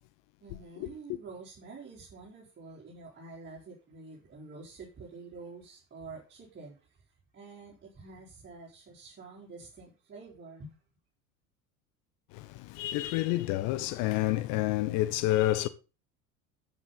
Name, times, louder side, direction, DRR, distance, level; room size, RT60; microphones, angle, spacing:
voice 1, 0.4-7.0 7.3-10.7, right 3 dB, 25° right, 4.4 m, -48 dB
voice 2, 12.3-15.7, left 16 dB, 45° left, 1.0 m, -29 dB
13.5 x 7.8 x 3.9 m
figure-of-eight pair, 75°, 44 cm